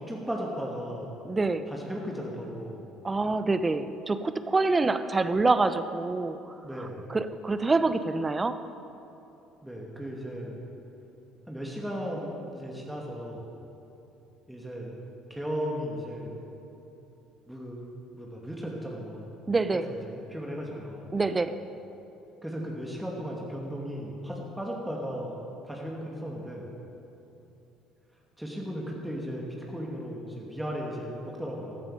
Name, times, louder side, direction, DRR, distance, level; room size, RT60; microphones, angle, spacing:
voice 1, 0.1-1.1 1.7-2.8 6.6-7.1 9.6-10.6 11.5-13.5 14.5-14.9 15.3-16.4 17.5-17.8 18.1-19.3 19.7-21.1 22.4-25.4 25.6-26.7 28.4-31.8, equal, 5° right, -2 dB, 2.5 m, -36 dB
voice 2, 1.3-1.7 3.0-6.4 7.1-8.6 19.5-19.9 21.1-21.6, right 3 dB, 25° right, 11 dB, 0.7 m, -26 dB
15.0 x 14.0 x 5.1 m, 3.0 s
hypercardioid pair, 60°, 0 cm